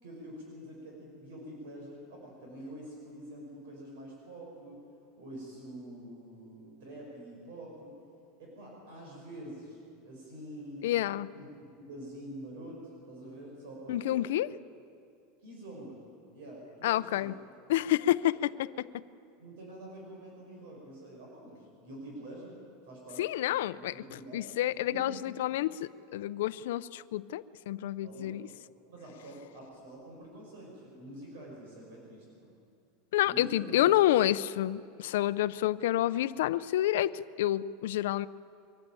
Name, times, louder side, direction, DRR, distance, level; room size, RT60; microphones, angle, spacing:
voice 1, 0.0-4.8 5.2-7.9 8.4-11.5 11.7-12.8 13.1-14.2 15.4-16.0 16.3-17.3 19.4-22.6 22.9-23.2 23.7-24.4 24.9-25.2 28.0-28.5 28.8-32.5 33.2-33.8, right 1 dB, 65° right, -2 dB, 6.1 m, -46 dB
voice 2, 10.8-11.3 13.9-14.5 16.8-17.3 17.7-18.7 23.2-23.9 24.3-28.4 33.1-38.3, left 13 dB, 75° left, 15 dB, 0.5 m, -29 dB
23.5 x 14.0 x 9.0 m, 2.4 s
supercardioid pair, 180°, 0 cm